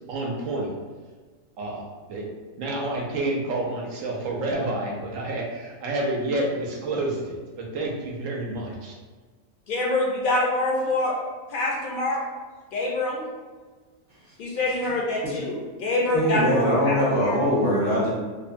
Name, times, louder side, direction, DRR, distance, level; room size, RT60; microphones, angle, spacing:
voice 1, 0.1-0.7 1.6-2.2 2.6-8.9, right 2 dB, 80° right, -1 dB, 1.0 m, -29 dB
voice 2, 9.7-11.2 11.5-12.2 12.7-13.2 14.4-17.4, left 2 dB, 60° left, -3 dB, 0.5 m, -25 dB
voice 3, 16.1-18.1, equal, 50° right, -8 dB, 0.9 m, -22 dB
2.9 x 2.1 x 2.5 m, 1.4 s
omnidirectional pair, 1.4 m